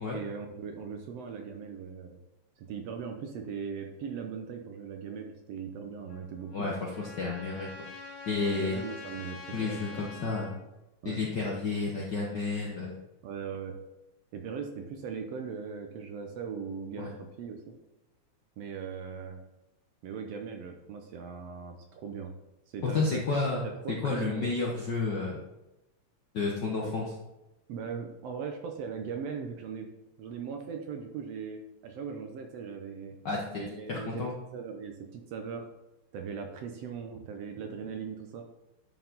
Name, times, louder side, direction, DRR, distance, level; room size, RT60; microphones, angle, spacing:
voice 1, 0.1-2.2 2.6-6.7 8.4-10.3 11.0-11.2 13.2-13.8 14.3-17.7 18.6-19.4 20.0-22.4 22.7-23.3 23.6-24.5 26.8-26.9 27.7-29.9 30.2-33.2 33.5-34.3 34.5-35.7 36.1-38.4, right 6 dB, 70° right, 4 dB, 1.6 m, -39 dB
Trumpet, 6.1-10.6, left 4 dB, 80° left, 3.0 m, -46 dB
voice 2, 6.5-7.7 8.3-8.8 9.5-10.6 11.0-13.0 17.0-17.1 22.8-23.6 24.0-25.4 26.3-27.0 33.2-33.4 33.7-34.3, left 3 dB, 65° left, -3 dB, 1.1 m, -31 dB
11.0 x 4.6 x 3.8 m, 0.96 s
omnidirectional pair, 3.3 m